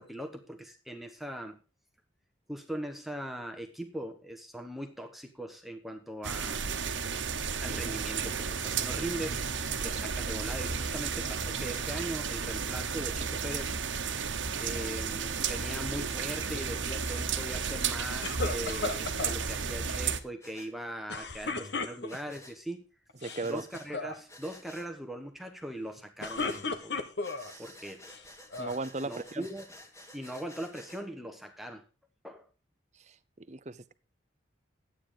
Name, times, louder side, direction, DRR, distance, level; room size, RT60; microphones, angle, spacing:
voice 1, 0.0-1.6 2.5-6.6 7.6-9.4 9.8-13.8 14.6-22.9 23.4-27.0 27.6-28.1 29.0-29.7 30.1-31.8 32.2-32.5, right 1 dB, ahead, 1.1 m, -40 dB
sound 1, 6.2-20.2, right 6 dB, 85° right, 1.2 m, -33 dB
Breathing, 16.4-16.6 17.0-17.2 18.4-18.6 20.4-20.7 22.1-22.6 23.2-23.9 24.3-24.9 26.2-26.6 27.2-31.0, left 1 dB, 15° left, 1.8 m, -52 dB
sound 2, 18.2-19.4 21.1-22.4 23.1-23.5 23.7-24.2 26.0-27.5 28.1-28.8, left 3 dB, 65° left, 1.3 m, -35 dB
voice 2, 23.2-23.6 27.4-27.6 28.6-29.4 33.5-33.9, right 3 dB, 40° right, 0.7 m, -36 dB
12.5 x 9.1 x 5.0 m
head